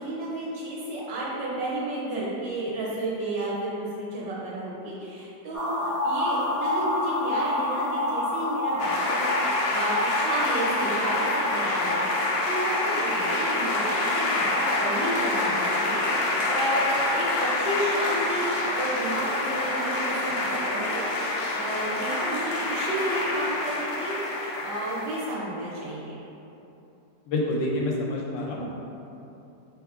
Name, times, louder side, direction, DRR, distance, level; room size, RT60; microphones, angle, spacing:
voice 1, 0.0-21.0 21.5-26.1, right 1 dB, 70° right, -7 dB, 1.5 m, -32 dB
sound 1, 5.5-25.3, left 1 dB, 45° left, 0.4 m, -32 dB
sound 2, 8.8-25.3, left 2 dB, 70° left, 0.9 m, -27 dB
voice 2, 27.3-28.7, left 1 dB, 85° left, -2 dB, 1.3 m, -27 dB
4.4 x 3.3 x 2.3 m, 2.9 s
omnidirectional pair, 1.9 m